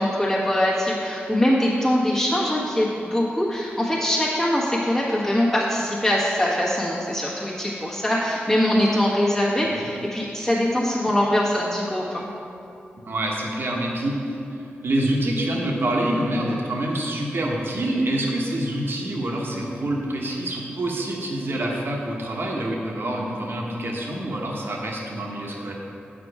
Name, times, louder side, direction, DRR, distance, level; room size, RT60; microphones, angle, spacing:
voice 1, 0.0-12.3, left 1 dB, 10° left, -6 dB, 1.5 m, -22 dB
voice 2, 13.0-25.7, right 1 dB, 60° right, -1 dB, 1.2 m, -26 dB
7.7 x 5.1 x 4.8 m, 2.7 s
cardioid pair, 55°, 4 cm